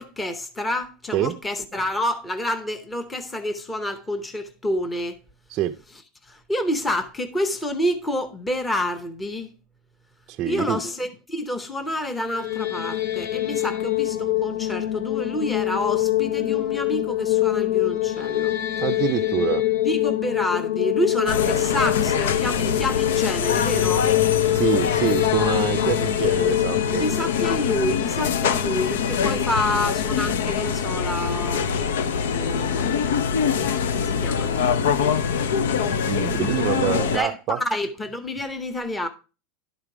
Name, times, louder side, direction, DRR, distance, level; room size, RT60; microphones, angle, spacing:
voice 1, 0.0-5.2 6.2-9.5 10.4-18.5 19.8-24.1 27.0-31.7 32.3-35.2 36.2-36.5 37.1-39.1, left 1 dB, 10° left, 0.8 m, -28 dB
voice 2, 10.3-10.8 18.8-19.7 24.5-27.0 35.8-37.6, right 11 dB, 30° right, 0.4 m, -26 dB
sound 1, 12.2-29.3, left 15 dB, 70° left, 1.1 m, -25 dB
sound 2, 21.3-37.2, left 7 dB, 90° left, 0.7 m, -24 dB
11.5 x 5.0 x 4.8 m
supercardioid pair, 170°, 0 cm